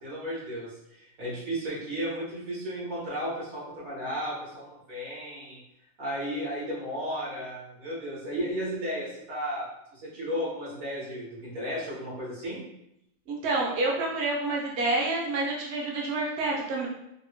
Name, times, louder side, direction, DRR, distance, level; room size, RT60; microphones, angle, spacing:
voice 1, 0.0-5.6 6.0-9.7 9.9-12.6, equal, 90° right, -7 dB, 2.0 m, -34 dB
voice 2, 13.3-16.9, right 2 dB, 60° right, -3 dB, 0.9 m, -28 dB
4.1 x 2.0 x 2.9 m, 0.82 s
omnidirectional pair, 1.4 m